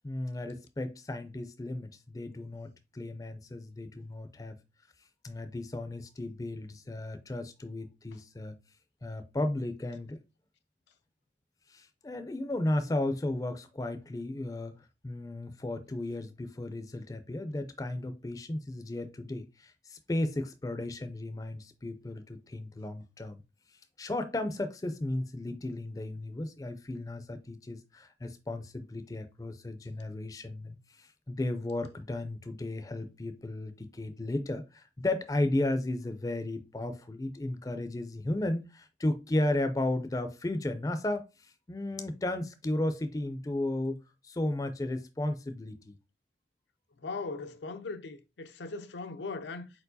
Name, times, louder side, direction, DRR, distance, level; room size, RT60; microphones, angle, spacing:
voice 1, 0.0-4.6 5.2-8.6 9.0-10.2 11.7-14.8 15.0-23.4 24.0-44.0 44.2-45.9, left 1 dB, 20° left, 0.4 m, -34 dB
voice 2, 47.0-49.7, left 3 dB, 85° left, 0.5 m, -39 dB
4.4 x 4.4 x 2.6 m
head